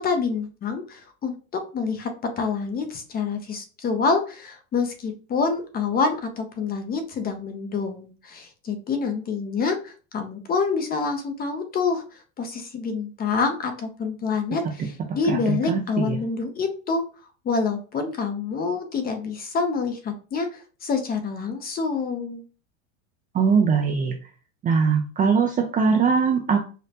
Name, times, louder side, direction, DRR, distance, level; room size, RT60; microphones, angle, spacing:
voice 1, 0.0-2.1 2.4-12.0 12.4-17.0 17.4-22.4, left 4 dB, 25° left, 6 dB, 0.6 m, -27 dB
voice 2, 15.3-16.2 23.3-24.1 24.6-26.6, right 5 dB, 20° right, 3 dB, 0.4 m, -21 dB
5.1 x 2.1 x 2.8 m, 0.36 s
supercardioid pair, 130°, 39 cm